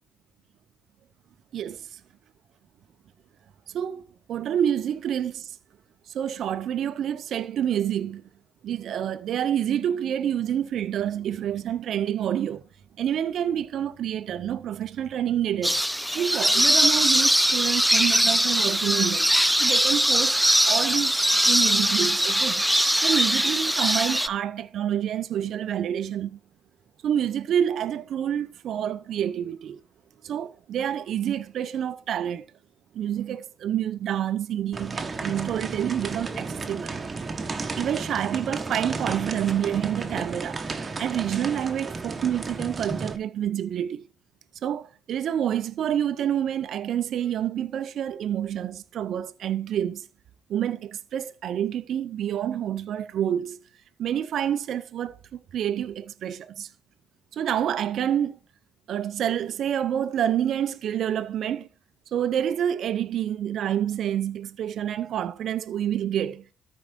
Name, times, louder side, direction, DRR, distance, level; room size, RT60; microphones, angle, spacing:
voice 1, 1.5-2.0 3.7-5.5 6.1-8.2 8.6-12.6 13.0-15.8 16.1-19.3 19.6-20.4 20.7-22.6 23.0-26.4 27.0-29.8 30.2-32.5 32.9-37.0 37.8-40.6 41.0-44.1 44.6-50.1 50.5-53.6 54.0-56.7 57.3-58.4 58.9-61.7 62.1-66.4, right 10 dB, 70° right, 0.7 m, -28 dB
sound 1, 15.6-24.3, equal, 5° right, 0.4 m, -21 dB
OM-FR-stairrail, 34.7-43.2, right 3 dB, 35° right, 1.3 m, -33 dB
13.5 x 4.7 x 3.7 m
cardioid pair, 75°, 0 cm